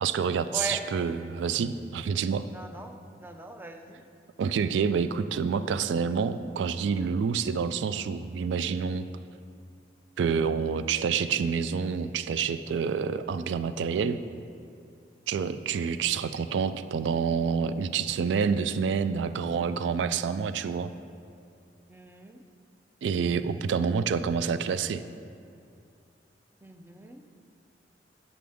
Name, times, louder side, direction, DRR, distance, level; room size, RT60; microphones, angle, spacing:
voice 1, 0.0-2.5 4.4-9.1 10.2-14.2 15.3-20.9 23.0-25.0, right 6 dB, 85° right, 12 dB, 0.3 m, -28 dB
voice 2, 0.5-0.8 2.5-4.0 21.9-22.4 26.6-27.3, right 1 dB, 10° right, 5 dB, 0.5 m, -40 dB
8.4 x 7.7 x 3.5 m, 2.5 s
head